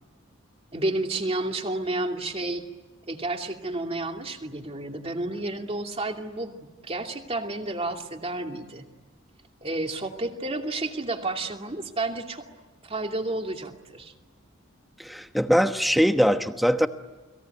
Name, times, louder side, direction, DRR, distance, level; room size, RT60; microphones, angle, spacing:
voice 1, 0.7-2.6 3.1-8.9 9.6-12.5 12.8-14.1, right 2 dB, 30° right, 3 dB, 2.6 m, -31 dB
voice 2, 15.0-16.9, equal, ahead, 7 dB, 1.2 m, -22 dB
30.0 x 21.5 x 9.3 m, 1.3 s
head